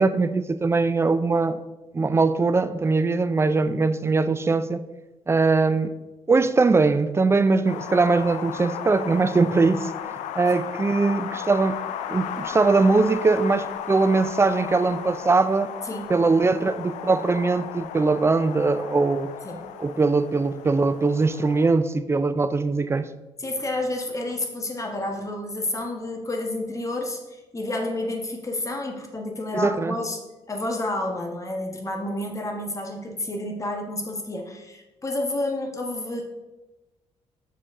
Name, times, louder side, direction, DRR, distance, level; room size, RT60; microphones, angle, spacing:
voice 1, 0.0-1.6 1.9-4.9 5.3-5.9 6.3-11.8 12.1-15.7 16.1-19.3 19.8-23.1 29.5-30.0, right 3 dB, 20° right, 0.4 m, -21 dB
Wind, 7.7-21.7, left 9 dB, 85° left, 0.4 m, -35 dB
voice 2, 23.4-30.2 30.5-36.2, left 1 dB, 25° left, 1.2 m, -30 dB
7.0 x 4.2 x 3.6 m
cardioid pair, 80°, 12 cm